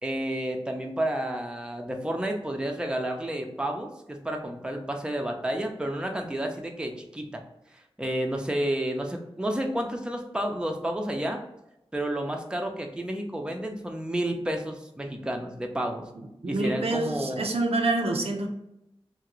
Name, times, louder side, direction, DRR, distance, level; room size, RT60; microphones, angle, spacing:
voice 1, 0.0-7.4 8.0-11.4 11.9-16.0 16.5-17.5, right 1 dB, 10° right, 3 dB, 0.5 m, -30 dB
voice 2, 16.2-18.5, right 2 dB, 75° right, 3 dB, 0.5 m, -27 dB
2.8 x 2.4 x 3.0 m, 0.86 s
wide cardioid pair, 65°, 10 cm